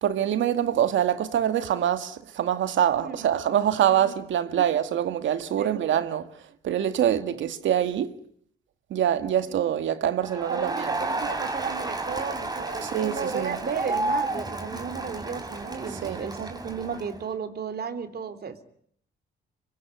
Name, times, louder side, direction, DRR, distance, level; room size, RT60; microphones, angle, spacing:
voice 1, 0.0-8.2 8.9-11.0 12.8-13.6 15.9-16.2, right 10 dB, 75° right, 2.1 m, -25 dB
voice 2, 2.9-3.4 3.9-4.0 5.6-5.7 7.0-7.5 10.5-18.6, right 6 dB, 55° right, 3.6 m, -34 dB
Crowd, 10.2-17.3, right 2 dB, 20° right, 4.3 m, -32 dB
26.0 x 22.5 x 9.6 m
cardioid pair, 90°, 20 cm